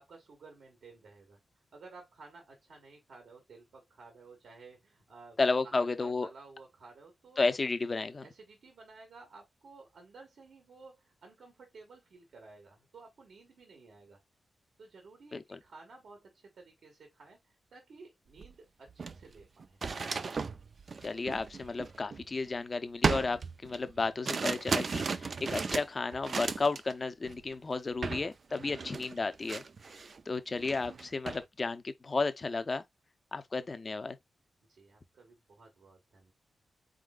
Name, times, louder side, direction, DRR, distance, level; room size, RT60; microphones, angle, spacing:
voice 1, 0.0-1.4 1.7-5.4 5.6-7.4 8.2-14.2 14.8-19.8 28.9-29.0 34.7-36.3, right 3 dB, 75° right, 1.8 m, -54 dB
voice 2, 5.4-6.3 7.4-8.2 15.3-15.6 21.0-29.6 30.3-32.8 33.3-34.2, left 3 dB, 35° left, 0.6 m, -33 dB
sound 1, 18.4-18.5 18.9-22.5 23.0-26.9 27.2-27.5 28.0-28.3 28.5-30.2 30.6-31.4, right 4 dB, 45° right, 0.4 m, -35 dB
4.3 x 3.8 x 2.5 m
wide cardioid pair, 125°, 0 cm